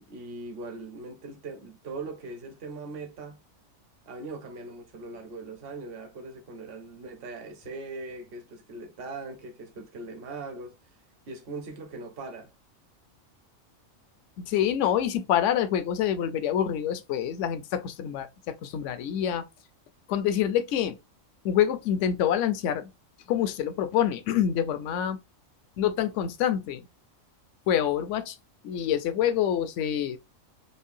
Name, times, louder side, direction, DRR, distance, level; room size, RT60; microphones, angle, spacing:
voice 1, 0.0-3.4 4.1-10.8 11.3-12.5, right 3 dB, 50° right, 1.0 m, -40 dB
voice 2, 14.4-19.4 20.1-21.0 21.4-22.9 23.3-25.2 25.8-26.9 27.7-28.4 28.6-30.2, left 10 dB, 70° left, 0.9 m, -26 dB
5.3 x 2.2 x 2.6 m
omnidirectional pair, 1.4 m